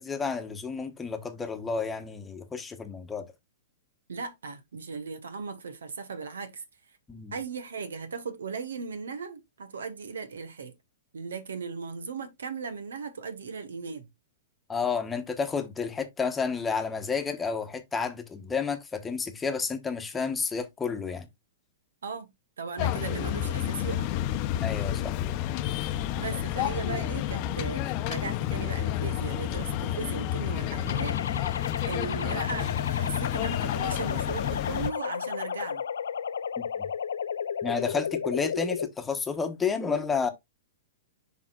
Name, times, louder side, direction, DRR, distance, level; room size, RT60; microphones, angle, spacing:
voice 1, 0.0-3.3 7.1-7.3 14.7-21.3 24.6-25.2 36.6-36.9 37.6-40.3, left 5 dB, 15° left, 1.1 m, -31 dB
voice 2, 4.1-6.6 7.3-10.7 11.1-14.1 22.0-22.3 22.6-24.1 26.1-31.5 31.9-35.8, right 5 dB, 80° right, 1.2 m, -37 dB
Sound of air pump at a gas station, 22.8-34.9, left 12 dB, 45° left, 0.7 m, -30 dB
sound 1, 30.9-38.9, left 7 dB, 80° left, 0.5 m, -33 dB
11.0 x 3.6 x 2.4 m
hypercardioid pair, 125°, 0 cm